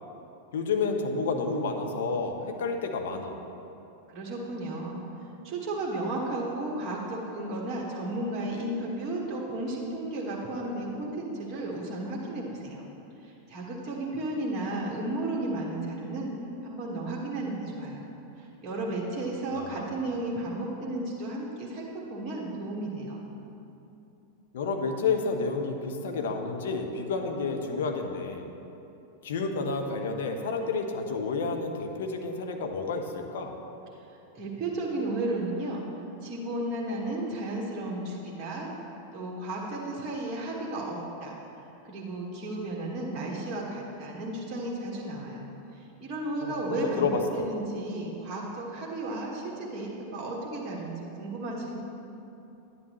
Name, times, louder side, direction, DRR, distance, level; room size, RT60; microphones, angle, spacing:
voice 1, 0.5-3.4 19.5-19.9 24.5-28.5 29.2-33.5 46.4-47.2, left 4 dB, 60° left, 4 dB, 0.9 m, -30 dB
voice 2, 4.1-12.8 13.2-16.3 16.6-18.0 18.4-23.2 34.3-35.8 36.2-38.7 39.1-41.4 41.9-51.8, right 2 dB, 25° right, -4 dB, 1.4 m, -33 dB
11.0 x 10.5 x 3.1 m, 2.9 s
figure-of-eight pair, 90°, 0 cm